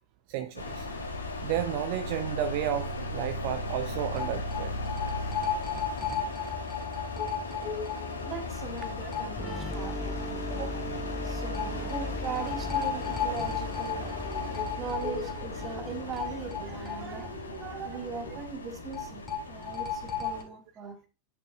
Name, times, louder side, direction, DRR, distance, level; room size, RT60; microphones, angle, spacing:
voice 1, 0.3-0.9 1.4-4.7 10.5-10.8, right 10 dB, 45° right, 0.7 m, -32 dB
sound 1, 0.6-20.4, left 2 dB, 75° left, 1.9 m, -37 dB
sound 2, 2.8-2.9 3.2-3.3 4.2-9.9 10.2-10.3 11.5-17.6 17.9-18.0 18.9-20.4, left 7 dB, 20° left, 2.2 m, -35 dB
voice 2, 8.2-10.8 11.2-21.0, right 5 dB, 25° right, 1.8 m, -40 dB
sound 3, 9.4-16.9, right 1 dB, 5° right, 0.3 m, -40 dB
9.8 x 9.1 x 2.4 m
figure-of-eight pair, 90°, 0 cm